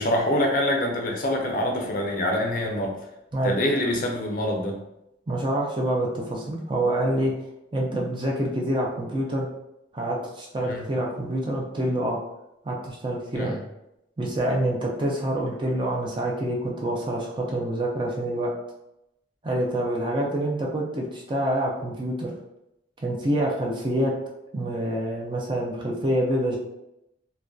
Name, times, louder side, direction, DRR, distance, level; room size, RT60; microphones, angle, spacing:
voice 1, 0.0-3.0 3.4-4.8 10.6-10.9 13.3-13.6, left 1 dB, 45° left, 1 dB, 0.4 m, -25 dB
voice 2, 5.3-7.3 7.7-9.5 9.9-12.2 12.6-13.5 14.2-18.5 19.4-22.3 23.0-24.1 24.5-26.6, right 1 dB, 25° right, -2 dB, 0.3 m, -26 dB
2.6 x 2.1 x 2.2 m, 0.86 s
head